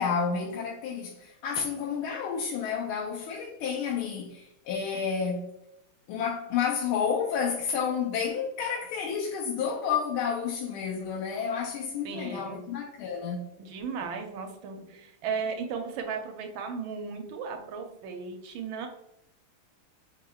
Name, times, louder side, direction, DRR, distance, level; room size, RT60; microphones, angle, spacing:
voice 1, 0.0-5.5 6.1-13.4, left 6 dB, 80° left, 1.4 m, -30 dB
voice 2, 12.0-12.6 13.6-18.9, right 5 dB, 75° right, 1.3 m, -35 dB
4.9 x 2.9 x 2.3 m
omnidirectional pair, 2.3 m